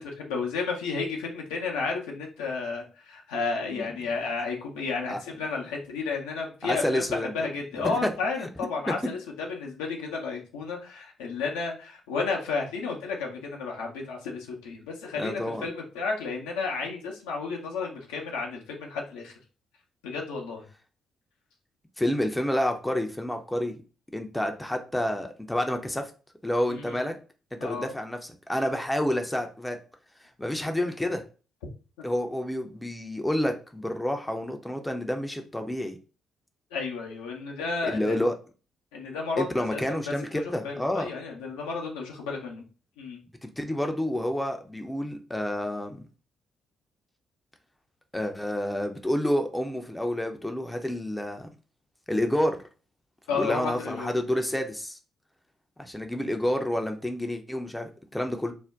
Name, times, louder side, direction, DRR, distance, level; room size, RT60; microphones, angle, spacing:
voice 1, 0.0-19.3 20.0-20.7 26.7-27.1 27.6-27.9 32.0-32.1 36.7-38.2 38.9-42.6 43.0-43.2 53.3-54.1, left 4 dB, 75° left, 0 dB, 0.6 m, -32 dB
voice 2, 6.6-7.5 7.8-8.1 8.9-9.0 15.2-15.7 22.0-23.7 24.1-26.1 26.4-27.1 27.6-29.8 30.4-31.2 32.0-36.0 37.8-38.3 39.4-41.1 43.6-46.0 48.1-51.5 52.1-52.6 53.3-55.0 55.8-58.5, left 1 dB, 10° left, 4 dB, 0.5 m, -29 dB
2.5 x 2.1 x 3.4 m, 0.35 s
figure-of-eight pair, 40°, 0 cm